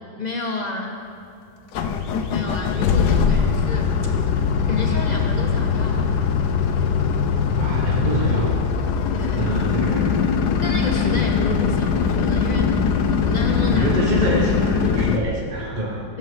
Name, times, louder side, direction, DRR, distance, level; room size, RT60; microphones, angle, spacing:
voice 1, 0.2-0.9 2.3-4.0 4.7-6.2 9.1-9.5 9.9-10.0 10.6-12.8 13.1-13.9, left 3 dB, 25° left, 0 dB, 1.1 m, -30 dB
sound 1, 1.7-15.2, left 6 dB, 65° left, 1.1 m, -21 dB
voice 2, 7.6-8.5 9.4-10.2 13.7-16.1, right 1 dB, 35° right, -2 dB, 0.8 m, -25 dB
15.5 x 7.6 x 6.1 m, 2.4 s
omnidirectional pair, 2.1 m